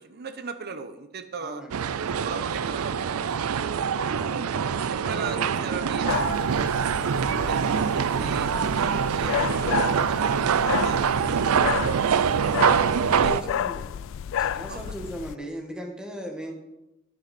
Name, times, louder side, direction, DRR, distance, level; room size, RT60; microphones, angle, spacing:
voice 1, 0.0-1.6 2.2-3.9 4.9-6.8 7.3-13.6 14.7-14.9, right 4 dB, 50° right, 9 dB, 0.9 m, -39 dB
voice 2, 1.4-1.8 4.0-4.7 5.0-5.6 13.0-13.9 14.4-16.5, equal, 5° right, 1 dB, 1.3 m, -38 dB
sound 1, 1.7-13.4, right 7 dB, 80° right, 0.4 m, -24 dB
sound 2, 6.1-15.3, left 9 dB, 65° left, 0.3 m, -31 dB
10.5 x 9.5 x 4.2 m, 0.94 s
head